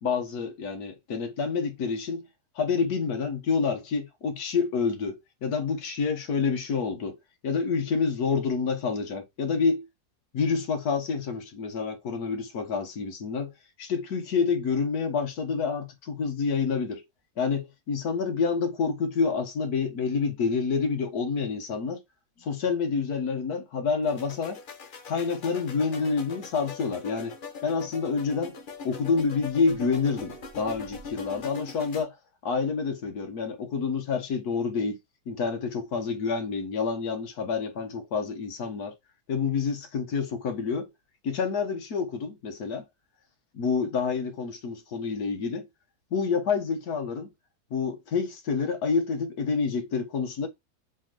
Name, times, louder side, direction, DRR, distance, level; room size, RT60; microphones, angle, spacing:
voice 1, 0.0-2.3 2.6-7.2 7.4-9.9 10.3-13.5 13.8-17.0 17.4-22.0 22.4-24.6 25.1-27.3 27.6-28.6 28.8-32.1 32.4-35.0 35.3-38.9 39.3-40.9 41.2-42.8 43.5-45.7 46.1-47.3 47.7-50.5, left 5 dB, 75° left, 1.6 m, -28 dB
sound 1, 24.0-32.0, left 5 dB, 40° left, 0.9 m, -42 dB
4.5 x 3.6 x 2.9 m
omnidirectional pair, 1.6 m